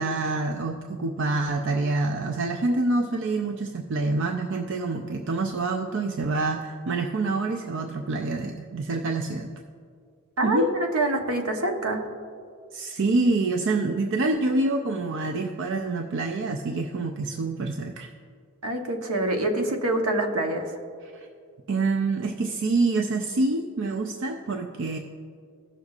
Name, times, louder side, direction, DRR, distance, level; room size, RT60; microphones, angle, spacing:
voice 1, 0.0-9.5 10.4-10.7 12.7-18.1 21.0-21.3 21.7-25.0, right 3 dB, 55° right, 4 dB, 0.4 m, -26 dB
voice 2, 10.4-12.0 18.6-20.6, right 1 dB, 75° right, 3 dB, 0.9 m, -25 dB
16.5 x 6.5 x 2.4 m, 2.2 s
head